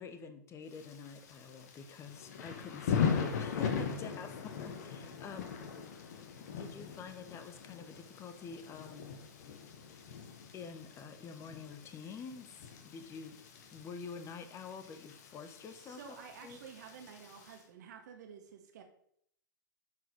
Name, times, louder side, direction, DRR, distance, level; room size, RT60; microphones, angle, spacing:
voice 1, 0.0-5.5 6.5-9.2 10.5-13.4 13.7-16.2 16.4-16.6, left 5 dB, 25° left, 9 dB, 1.2 m, -47 dB
Thunder / Rain, 0.7-17.6, left 6 dB, 55° left, 1.4 m, -40 dB
voice 2, 15.8-18.8, right 7 dB, 60° right, 4 dB, 1.8 m, -51 dB
9.5 x 5.2 x 5.3 m, 0.68 s
figure-of-eight pair, 95°, 11 cm